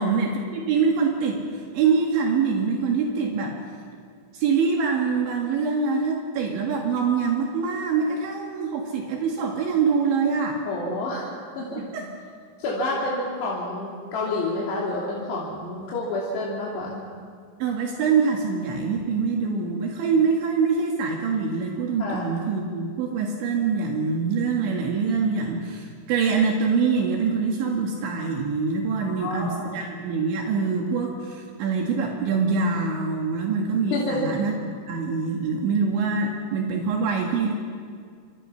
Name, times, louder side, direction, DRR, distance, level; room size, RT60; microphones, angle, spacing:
voice 1, 0.0-1.4 1.7-3.6 4.3-10.6 11.8-12.1 17.6-34.5 34.9-37.5, right 5 dB, 75° right, 0 dB, 4.1 m, -24 dB
voice 2, 10.6-11.9 12.6-17.1 19.4-19.5 22.0-22.2 29.0-29.8 33.9-34.4, left 2 dB, 60° left, -5 dB, 4.8 m, -29 dB
28.0 x 26.0 x 5.8 m, 2.2 s
omnidirectional pair, 5.6 m